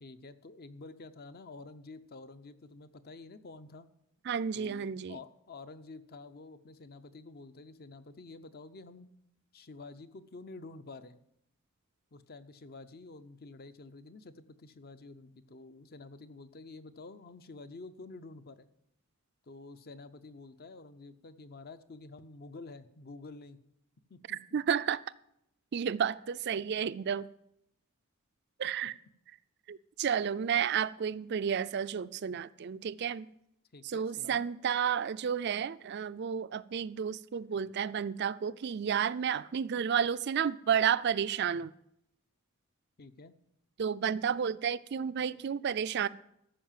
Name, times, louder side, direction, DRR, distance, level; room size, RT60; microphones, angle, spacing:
voice 1, 0.0-3.9 4.5-9.1 9.5-11.2 12.1-18.7 19.5-23.6 24.1-24.6 33.7-34.5 43.0-43.4, left 3 dB, 45° left, 0.6 m, -49 dB
voice 2, 4.3-5.2 24.3-25.0 25.7-27.3 28.6-28.9 29.7-33.3 33.8-41.7 43.8-46.1, right 7 dB, 50° right, 0.4 m, -31 dB
14.0 x 5.6 x 7.4 m
head